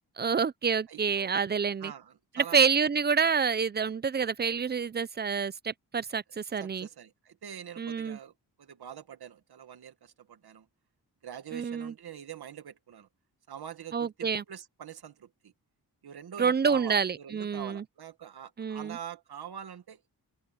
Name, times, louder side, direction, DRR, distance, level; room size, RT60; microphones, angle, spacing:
voice 1, 0.2-1.9 2.4-6.9 7.8-8.2 11.5-11.9 13.9-14.4 16.4-17.8 18.6-19.0, right 6 dB, 30° right, 0.4 m, -28 dB
voice 2, 0.9-1.3 1.8-2.6 6.6-8.3 8.6-10.7 11.2-13.1 13.5-15.5 16.0-20.0, right 9 dB, 85° right, 1.8 m, -44 dB
open air
wide cardioid pair, 175°, 37 cm